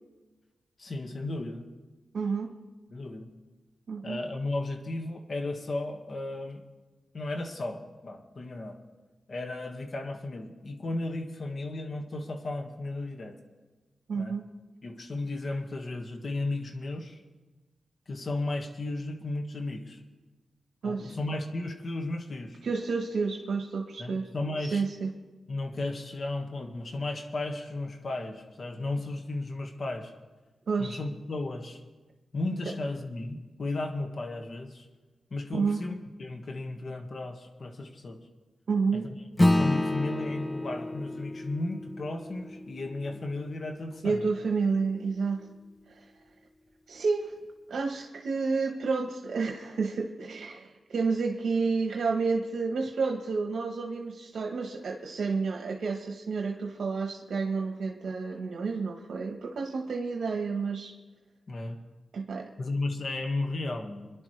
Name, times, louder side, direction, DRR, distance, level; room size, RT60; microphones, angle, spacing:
voice 1, 0.8-1.6 2.9-3.3 4.0-6.6 7.1-8.8 9.3-13.4 14.1-14.3 14.8-17.2 18.1-20.0 20.8-22.6 24.0-24.8 25.5-30.1 30.8-31.8 32.3-34.9 35.3-38.2 38.9-39.0 39.5-44.2 61.5-61.8 62.6-64.2, left 2 dB, 55° left, 4 dB, 1.7 m, -34 dB
voice 2, 2.1-2.5 3.9-4.2 14.1-14.4 20.8-21.2 22.6-24.3 24.7-25.1 30.7-31.0 35.5-35.8 38.7-39.1 44.0-45.4 45.9-46.0 46.9-47.3 47.7-60.9 62.1-62.5, right 4 dB, 75° right, 3 dB, 1.1 m, -30 dB
Acoustic guitar / Strum, 39.4-44.2, left 1 dB, 20° left, 0.5 m, -29 dB
25.5 x 11.0 x 3.3 m, 1.2 s
cardioid pair, 70°, 0 cm